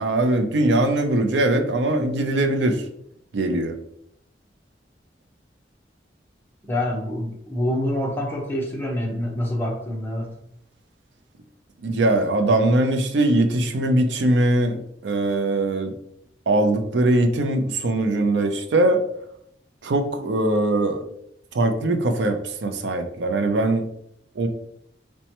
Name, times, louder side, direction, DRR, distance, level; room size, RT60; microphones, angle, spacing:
voice 1, 0.0-2.8 3.3-3.8 11.8-15.9 16.5-19.0 19.8-21.0 21.5-23.8 24.4-24.5, right 2 dB, 85° right, 6 dB, 0.5 m, -21 dB
voice 2, 6.6-10.3, left 1 dB, 10° left, -1 dB, 0.7 m, -26 dB
4.2 x 2.2 x 2.8 m, 0.71 s
head